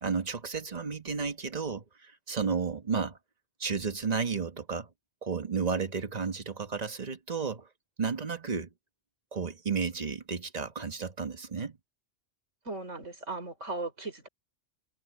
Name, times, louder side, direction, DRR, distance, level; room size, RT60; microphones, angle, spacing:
voice 1, 0.0-3.2 3.6-4.9 5.2-7.7 8.0-8.7 9.3-11.8, right 5 dB, 35° right, 1.4 m, -32 dB
voice 2, 12.7-14.3, right 3 dB, 80° right, 5.7 m, -37 dB
omnidirectional pair, 1.2 m